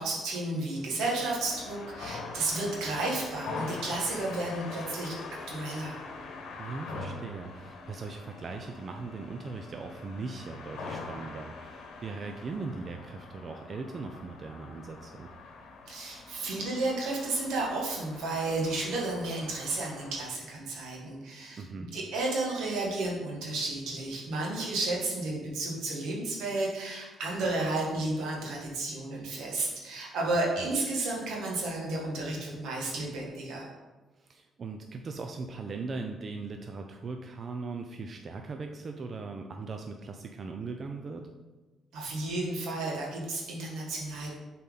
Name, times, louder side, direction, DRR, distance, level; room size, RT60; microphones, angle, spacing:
voice 1, 0.0-5.2 5.5-6.0 15.9-33.7 41.9-44.4, right 2 dB, 85° right, -3 dB, 1.7 m, -32 dB
sound 1, 0.7-20.2, left 3 dB, 75° left, 1.0 m, -43 dB
voice 2, 6.6-15.3 21.6-21.9 30.6-30.7 34.2-41.3, right 4 dB, 45° right, 4 dB, 0.5 m, -39 dB
7.2 x 4.3 x 3.9 m, 1.2 s
cardioid pair, 90°, 0 cm